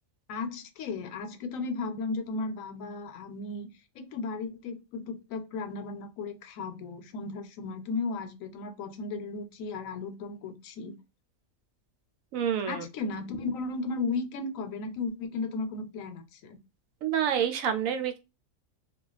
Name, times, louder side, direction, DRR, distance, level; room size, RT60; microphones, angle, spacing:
voice 1, 0.3-3.7 3.9-11.0 12.7-16.6, left 3 dB, 85° left, 1.0 m, -35 dB
voice 2, 12.3-12.8 17.0-18.2, right 8 dB, 80° right, 1.0 m, -28 dB
2.4 x 2.2 x 3.9 m
omnidirectional pair, 1.4 m